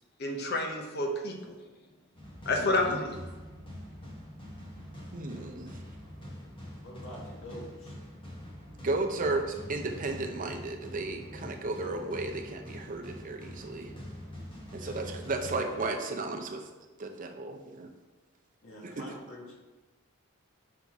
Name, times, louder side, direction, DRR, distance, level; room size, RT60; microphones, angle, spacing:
voice 1, 0.2-1.6 2.4-3.2, left 2 dB, 50° left, 2 dB, 0.9 m, -29 dB
sound 1, 2.2-16.3, equal, 25° left, 1.1 m, -45 dB
voice 2, 2.6-3.0 5.1-5.8 8.8-13.9 14.7-16.7 17.0-17.9 18.8-19.1, right 2 dB, 40° right, 4 dB, 0.6 m, -34 dB
voice 3, 6.8-7.9 14.7-14.9 18.6-19.6, left 1 dB, 85° left, -3 dB, 1.6 m, -46 dB
5.8 x 4.0 x 4.6 m, 1.2 s
head